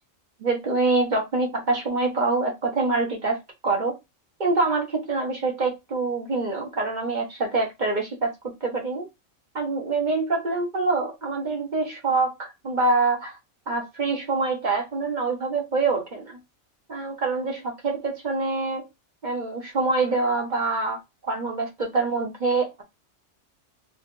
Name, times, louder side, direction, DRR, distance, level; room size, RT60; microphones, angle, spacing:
voice 1, 0.4-4.0 4.4-8.3 8.6-9.1 9.5-13.3 13.7-16.4 16.9-18.9 19.2-21.0 21.3-22.8, right 3 dB, 40° right, 1.1 m, -25 dB
4.2 x 2.5 x 3.1 m
omnidirectional pair, 1.2 m